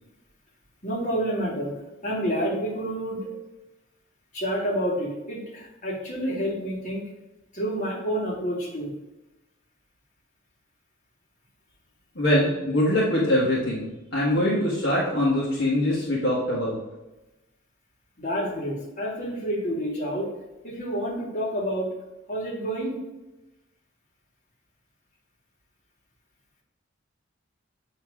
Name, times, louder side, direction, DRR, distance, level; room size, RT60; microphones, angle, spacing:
voice 1, 0.8-1.7 2.0-3.3 4.3-7.1 7.5-8.9 18.2-20.3 20.6-21.9 22.3-23.0, equal, 40° left, -4 dB, 2.0 m, -29 dB
voice 2, 12.1-16.8, left 1 dB, 60° left, -6 dB, 1.5 m, -23 dB
7.8 x 3.2 x 4.8 m, 1.0 s
head